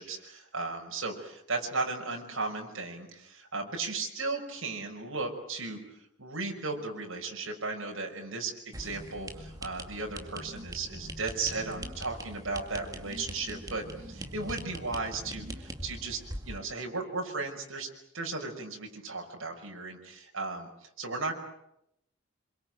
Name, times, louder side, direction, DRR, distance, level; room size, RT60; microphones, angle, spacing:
voice 1, 0.0-5.8 6.2-17.9 18.1-21.3, right 3 dB, 80° right, 2 dB, 5.6 m, -36 dB
sound 1, 8.7-16.6, right 1 dB, 15° right, 2.2 m, -42 dB
26.5 x 23.5 x 9.2 m, 0.82 s
head